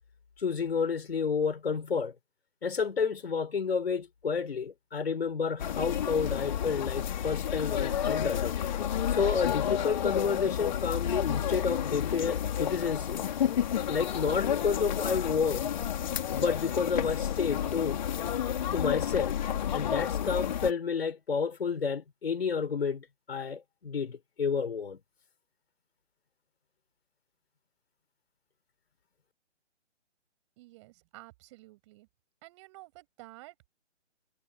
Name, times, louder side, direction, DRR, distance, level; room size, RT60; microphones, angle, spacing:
voice 1, 0.4-2.1 2.6-8.5 9.1-13.2 13.9-15.7 16.3-18.0 18.7-19.4 19.7-25.0, left 5 dB, 55° left, 3.8 m, -30 dB
sound 1, 5.6-20.7, left 9 dB, 40° left, 4.0 m, -31 dB
voice 2, 30.6-32.1 32.4-33.7, right 20 dB, 25° right, 7.3 m, -52 dB
figure-of-eight pair, 140°, 36 cm